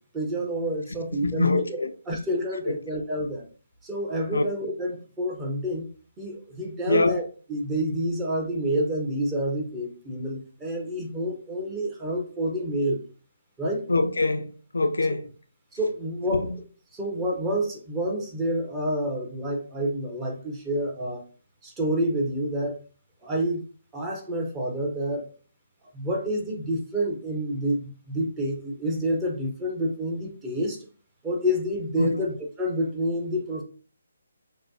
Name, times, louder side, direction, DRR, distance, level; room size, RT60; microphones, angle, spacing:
voice 1, 0.1-1.6 2.1-3.5 3.8-5.9 6.2-7.2 7.5-13.0 13.6-13.9 15.7-16.6 16.9-21.2 21.6-22.8 23.2-23.6 23.9-25.2 25.9-30.9 31.2-33.6, equal, 15° right, 0.9 m, -28 dB
voice 2, 1.1-1.9 4.3-4.4 6.9-7.1 13.9-15.3 16.3-16.5 32.0-32.2, left 3 dB, 80° left, 0.5 m, -24 dB
6.4 x 2.3 x 2.7 m
figure-of-eight pair, 150°, 0 cm